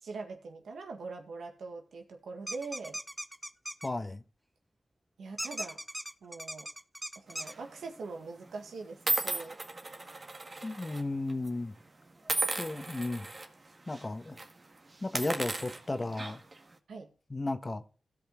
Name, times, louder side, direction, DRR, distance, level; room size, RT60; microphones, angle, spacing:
voice 1, 0.0-3.0 5.2-5.8 6.2-6.7 7.2-9.6 16.9-17.1, right 4 dB, 85° right, 1.8 m, -42 dB
sound 1, 2.5-3.9 5.4-7.5, equal, 5° right, 0.7 m, -39 dB
voice 2, 3.8-4.2 10.6-11.7 12.6-13.3 13.9-14.4 15.0-16.4 17.3-17.8, left 2 dB, 35° left, 1.4 m, -34 dB
sound 2, 7.4-7.7 8.4-8.5 9.1-11.0 11.3-11.5 12.3-13.5 13.9-14.0 14.3-14.5 15.0-16.6, right 2 dB, 45° right, 1.8 m, -35 dB
16.0 x 5.5 x 3.8 m
cardioid pair, 50°, 0 cm